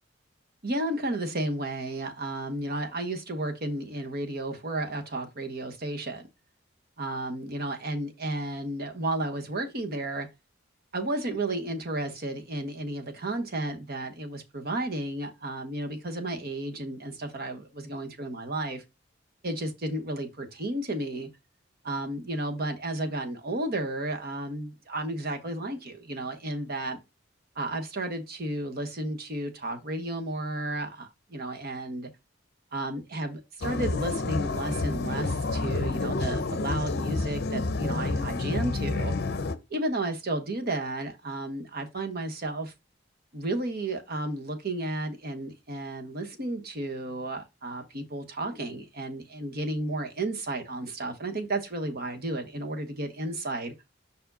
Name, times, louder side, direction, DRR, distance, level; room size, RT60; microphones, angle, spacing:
voice 1, 0.6-6.2 7.0-10.3 10.9-18.8 19.4-21.3 21.8-27.0 27.5-32.1 32.7-39.1 39.7-42.7 43.3-53.7, right 2 dB, 55° right, 1.2 m, -33 dB
sound 1, 33.6-39.6, left 3 dB, 55° left, 0.7 m, -29 dB
5.5 x 4.7 x 3.9 m
head